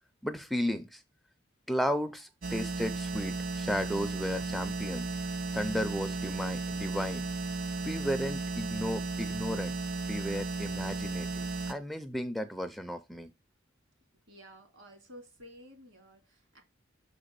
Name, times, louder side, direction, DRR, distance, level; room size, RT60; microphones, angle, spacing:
voice 1, 0.2-1.0 1.7-5.1 5.5-7.3 7.8-9.8 10.1-13.3, equal, ahead, 0.4 m, -34 dB
sound 1, 2.4-11.7, right 3 dB, 45° right, 0.6 m, -35 dB
voice 2, 14.3-16.6, equal, 70° right, 2.1 m, -52 dB
6.5 x 4.0 x 5.0 m
head